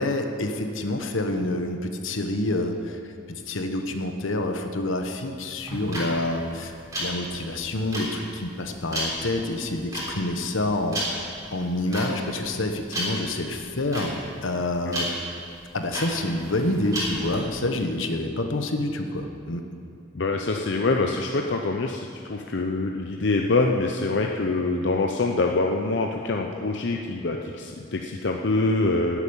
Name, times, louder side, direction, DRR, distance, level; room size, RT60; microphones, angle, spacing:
voice 1, 0.0-3.0 3.3-6.7 7.0-11.0 11.5-15.1 15.7-19.6, left 1 dB, 80° left, 5 dB, 1.2 m, -27 dB
sound 1, 5.6-17.4, equal, 15° right, 3.5 m, -33 dB
voice 2, 20.1-29.2, left 3 dB, 60° left, 2 dB, 0.7 m, -25 dB
12.5 x 8.3 x 8.8 m, 2.4 s
head